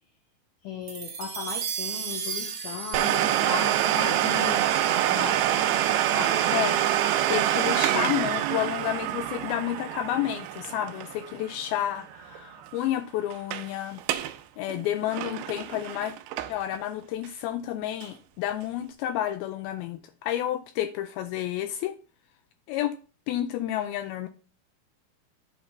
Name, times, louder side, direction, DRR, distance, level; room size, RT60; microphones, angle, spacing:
voice 1, 0.6-6.6, left 6 dB, 70° left, 2.0 m, -37 dB
sound 1, 0.9-5.4, right 6 dB, 50° right, 1.6 m, -36 dB
Domestic sounds home sounds, 2.9-12.4 12.6-12.7 13.3-13.7 14.0-14.4 14.7-16.8 17.2-17.3 18.0-18.1, right 12 dB, 80° right, 2.4 m, -26 dB
voice 2, 4.0-4.6 5.1-5.3 6.5-6.8 7.3-14.0 14.6-16.1 16.5-22.0 22.7-22.9 23.3-24.3, left 12 dB, 90° left, 2.1 m, -30 dB
8.5 x 4.0 x 5.9 m
omnidirectional pair, 4.8 m